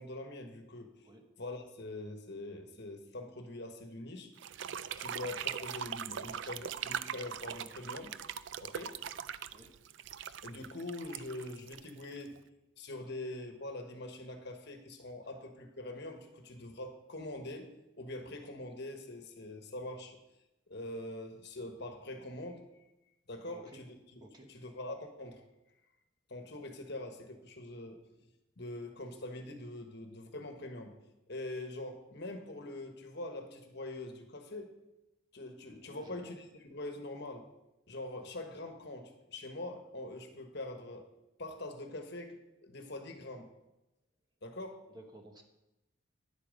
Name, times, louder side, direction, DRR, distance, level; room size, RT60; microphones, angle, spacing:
voice 1, 0.0-1.1 1.4-4.3 5.0-8.2 8.6-9.0 10.4-12.4 12.8-17.7 18.0-20.2 20.7-22.7 23.3-25.4 26.3-28.0 28.6-30.9 31.3-34.7 35.3-37.5 37.9-41.1 41.4-43.5 44.4-44.8, left 2 dB, 55° left, 5 dB, 1.3 m, -43 dB
sound 1, 4.4-12.4, right 8 dB, 65° right, 0.4 m, -41 dB
voice 2, 23.5-23.8 24.2-24.5 35.9-36.3 44.9-45.4, right 1 dB, 20° right, 3 dB, 1.2 m, -54 dB
10.0 x 8.5 x 5.3 m, 0.94 s
head